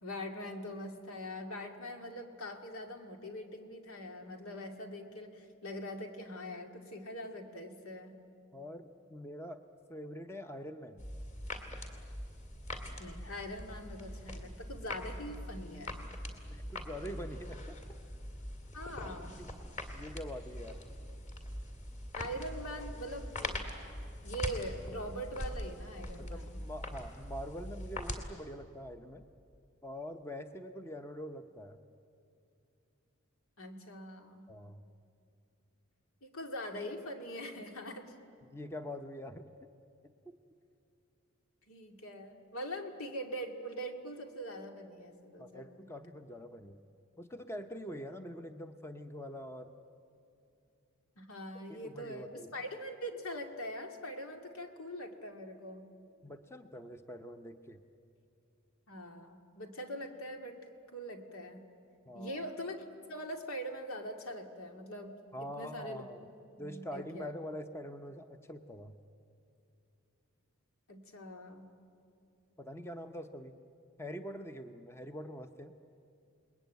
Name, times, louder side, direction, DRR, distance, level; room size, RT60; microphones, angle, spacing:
voice 1, 0.0-8.1 13.0-16.0 18.7-19.4 22.1-23.6 24.2-26.6 33.6-34.5 36.2-38.1 41.7-45.9 51.2-55.9 58.9-60.6 60.9-61.6 62.1-66.0 66.6-67.3 70.9-71.7, equal, 80° left, 4 dB, 2.4 m, -43 dB
voice 2, 8.5-9.6 9.9-11.1 16.5-18.0 19.4-19.5 19.9-20.8 26.2-29.2 29.8-31.8 34.5-34.8 38.4-39.4 40.3-40.4 45.4-46.8 47.2-49.7 51.7-52.5 56.2-57.8 62.1-62.4 65.3-66.3 66.6-69.0 72.6-73.5 74.0-75.7, equal, 10° left, 8 dB, 0.7 m, -44 dB
sound 1, 11.0-28.2, left 1 dB, 30° left, 2.4 m, -43 dB
29.0 x 21.0 x 9.3 m, 2.6 s
head